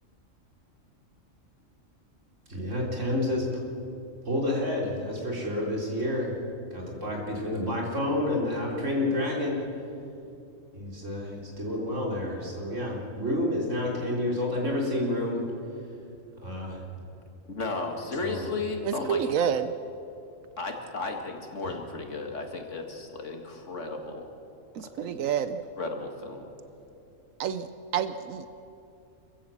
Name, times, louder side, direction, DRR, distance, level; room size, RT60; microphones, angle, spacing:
voice 1, 2.5-3.5 4.3-6.4 6.7-9.6 10.7-15.4 16.4-16.8 18.2-18.5 21.6-21.7, left 1 dB, 65° right, -2 dB, 4.2 m, -29 dB
voice 2, 17.5-19.2 20.6-24.3 25.0-25.2 25.8-26.4, left 3 dB, 65° left, 3 dB, 2.3 m, -34 dB
voice 3, 18.9-19.7 24.8-25.6 27.4-27.7 27.9-28.5, right 8 dB, 80° right, 11 dB, 1.1 m, -28 dB
26.5 x 15.5 x 7.2 m, 2.7 s
omnidirectional pair, 1.4 m